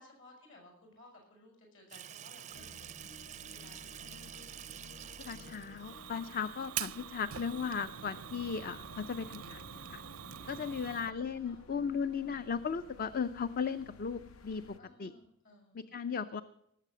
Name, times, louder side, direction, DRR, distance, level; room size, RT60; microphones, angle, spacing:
voice 1, 0.0-4.3 10.4-11.6 14.8-15.9, left 2 dB, 60° left, 2 dB, 6.9 m, -59 dB
Water tap faucet / Sink (filling or washing), 1.9-7.3, right 10 dB, 35° right, 0.4 m, -49 dB
sound 1, 2.5-14.8, left 3 dB, 80° left, 0.8 m, -55 dB
voice 2, 5.2-9.6 9.9-10.0 10.5-14.6 15.0-15.1 15.7-16.4, left 6 dB, 45° left, 13 dB, 0.4 m, -36 dB
Fire, 5.8-11.1, right 11 dB, 90° right, 0.6 m, -44 dB
18.5 x 7.5 x 7.6 m, 0.79 s
head